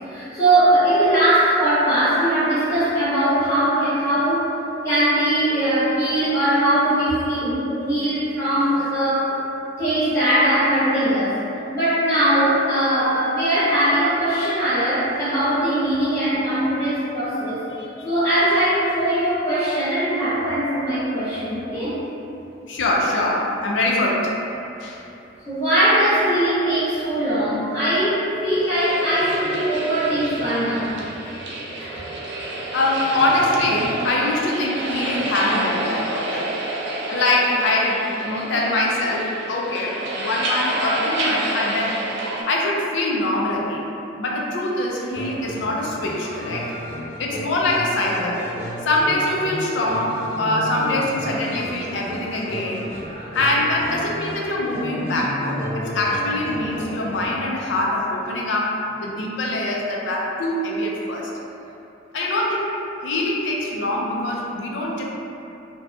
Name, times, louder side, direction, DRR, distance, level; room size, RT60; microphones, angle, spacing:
voice 1, 0.1-4.5 4.8-9.4 9.8-11.4 11.7-17.6 18.0-22.0 25.5-30.9 31.8-32.0, right 1 dB, 15° left, -15 dB, 0.9 m, -20 dB
voice 2, 16.1-16.4 17.7-18.1 22.7-24.4 24.8-25.0 31.2-31.5 32.1-32.2 32.7-36.5 37.1-42.0 42.5-43.9 44.2-46.7 47.2-48.4 48.8-52.9 53.3-61.3 62.1-62.7 63.0-65.0, left 1 dB, 70° left, -2 dB, 0.4 m, -23 dB
sound 1, 28.7-42.4, right 1 dB, 65° right, 0.4 m, -29 dB
sound 2, 45.1-57.3, left 1 dB, 90° left, 0.8 m, -33 dB
2.6 x 2.2 x 2.3 m, 2.9 s
head